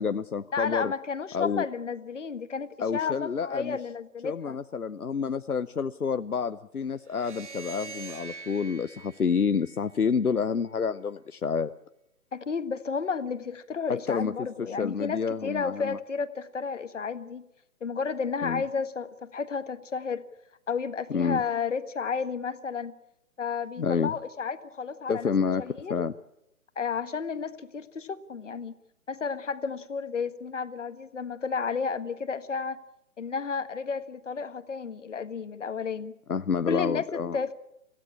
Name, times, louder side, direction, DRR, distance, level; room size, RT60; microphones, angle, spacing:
voice 1, 0.0-0.9 1.3-1.6 2.8-3.8 4.2-11.7 13.9-14.3 14.8-16.0 18.4-18.6 21.1-21.4 23.8-24.1 25.1-25.6 25.9-26.1 36.3-37.4, left 6 dB, 85° left, 12 dB, 0.8 m, -28 dB
voice 2, 0.5-4.6 12.3-17.4 17.8-20.2 20.7-22.9 23.4-25.3 25.6-26.1 26.7-28.8 29.1-32.8 33.2-36.1 36.6-37.5, left 5 dB, 55° left, 11 dB, 1.6 m, -32 dB
sound 1, 7.0-10.3, right 4 dB, 55° right, 1.1 m, -44 dB
26.5 x 16.0 x 8.7 m, 0.85 s
figure-of-eight pair, 135°, 43 cm